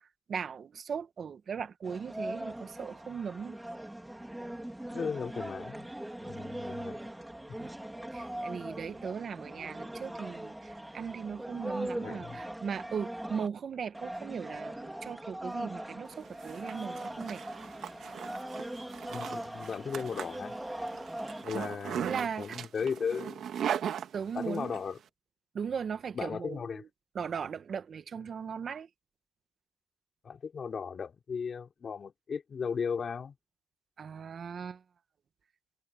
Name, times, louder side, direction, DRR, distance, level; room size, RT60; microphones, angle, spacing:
voice 1, 0.0-3.6 7.6-7.7 8.1-17.4 21.5-21.7 22.0-22.6 24.1-24.8 25.5-26.9 27.1-28.9 34.0-34.8, right 6 dB, 50° right, 1.4 m, -38 dB
sound 1, 1.8-13.5 13.9-21.4, right 1 dB, 5° right, 3.4 m, -40 dB
voice 2, 4.9-5.9 6.2-7.0 7.5-7.6 11.9-12.4 19.1-20.6 21.4-23.5 24.3-25.0 26.1-26.8 30.2-33.3, left 6 dB, 45° left, 3.5 m, -36 dB
Zipper (clothing), 16.1-24.8, right 9 dB, 65° right, 2.1 m, -39 dB
cardioid pair, 90°, 0 cm